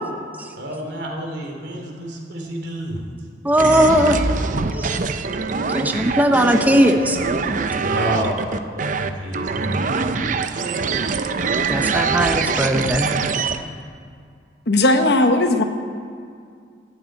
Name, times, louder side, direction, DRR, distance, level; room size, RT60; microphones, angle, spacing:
voice 1, 0.6-3.0 7.8-8.3 8.8-9.8, equal, 80° right, 1 dB, 2.7 m, -28 dB
voice 2, 3.4-4.2 4.8-4.9 5.7-7.2 11.7-13.1, equal, 10° right, 4 dB, 0.7 m, -18 dB
sound 1, 3.6-13.6, right 4 dB, 45° right, 0.6 m, -23 dB
voice 3, 14.7-15.6, left 2 dB, 65° left, 7 dB, 1.0 m, -16 dB
13.0 x 6.7 x 9.2 m, 2.2 s
head